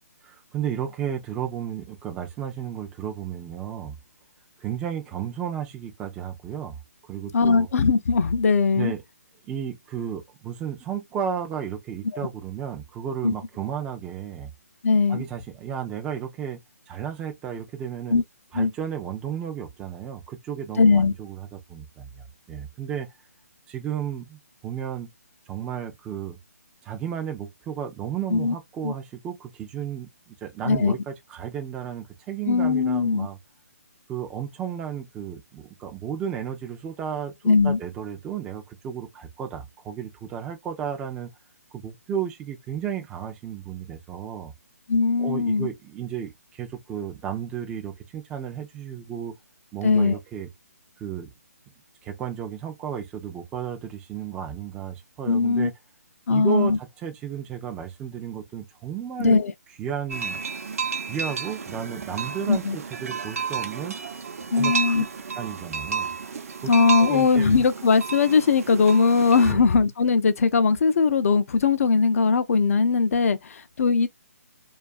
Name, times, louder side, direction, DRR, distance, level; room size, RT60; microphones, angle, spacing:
voice 1, 0.2-4.0 4.6-6.8 7.0-7.7 8.7-9.0 9.4-14.5 15.1-16.6 16.9-18.2 18.5-23.1 23.7-25.1 25.5-26.4 26.8-33.4 34.1-41.3 41.7-44.5 45.2-49.3 49.7-50.5 51.0-51.3 52.0-55.7 56.3-59.4 59.8-60.4 61.0-64.0 64.6-65.0 65.4-66.1 66.6-66.7 67.0-67.5 69.4-69.6, right 8 dB, 10° right, 0.3 m, -33 dB
voice 2, 7.3-8.9 12.1-12.3 13.2-13.3 14.8-15.3 18.1-18.2 18.5-18.7 20.8-21.1 28.3-28.5 28.8-28.9 30.6-31.0 32.5-33.3 37.4-37.8 44.9-45.7 49.8-50.2 55.3-55.7 56.3-56.8 59.2-59.5 62.5-62.8 64.5-65.0 66.7-74.1, left 4 dB, 65° left, 0.4 m, -20 dB
sound 1, 60.1-69.5, right 6 dB, 65° right, 0.6 m, -31 dB
2.5 x 2.3 x 2.2 m
hypercardioid pair, 155°, 9 cm